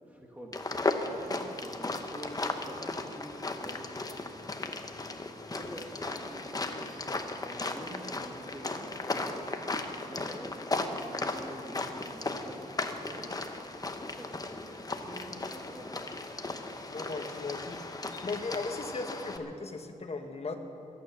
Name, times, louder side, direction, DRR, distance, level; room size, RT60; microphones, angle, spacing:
voice 1, 0.1-0.6 1.0-3.9 5.5-7.0 7.4-9.7 10.1-13.4 14.2-16.1, equal, 10° right, 0 dB, 1.7 m, -46 dB
sound 1, 0.5-19.4, left 2 dB, 25° left, 0.9 m, -36 dB
voice 2, 16.9-20.6, left 3 dB, 45° left, 5 dB, 1.3 m, -37 dB
22.5 x 9.1 x 6.6 m, 2.8 s
wide cardioid pair, 130°, 15 cm